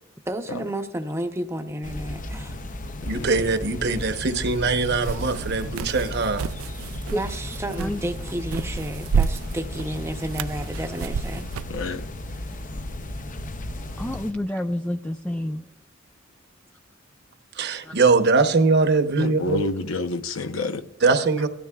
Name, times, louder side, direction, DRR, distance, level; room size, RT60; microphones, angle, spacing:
voice 1, 0.3-2.6 7.1-11.4 11.7-11.9 12.3-12.4, right 1 dB, 15° right, 0.7 m, -31 dB
sound 1, 1.8-14.3, left 1 dB, 40° left, 0.7 m, -34 dB
voice 2, 3.0-6.4 17.5-19.6 21.0-21.5, right 4 dB, 55° right, 0.9 m, -21 dB
sound 2, 5.0-11.8, right 6 dB, 85° right, 0.4 m, -31 dB
voice 3, 7.8-8.1 8.6-8.7 14.0-15.7 17.8-18.0, left 1 dB, 5° left, 0.3 m, -29 dB
voice 4, 11.7-12.0 19.2-20.8, left 3 dB, 75° left, 0.8 m, -29 dB
18.0 x 12.5 x 2.4 m
head